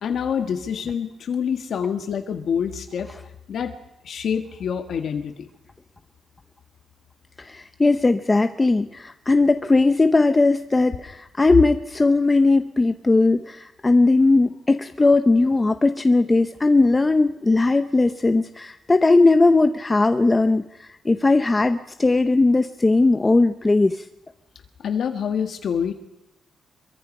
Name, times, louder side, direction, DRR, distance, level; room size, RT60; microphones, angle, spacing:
voice 1, 0.0-3.1 3.5-3.7 4.0-5.5 24.8-25.9, left 7 dB, 55° left, 6 dB, 1.7 m, -26 dB
voice 2, 7.4-24.0, left 3 dB, 15° left, 8 dB, 0.8 m, -18 dB
25.5 x 23.0 x 5.5 m, 0.86 s
wide cardioid pair, 165°, 0 cm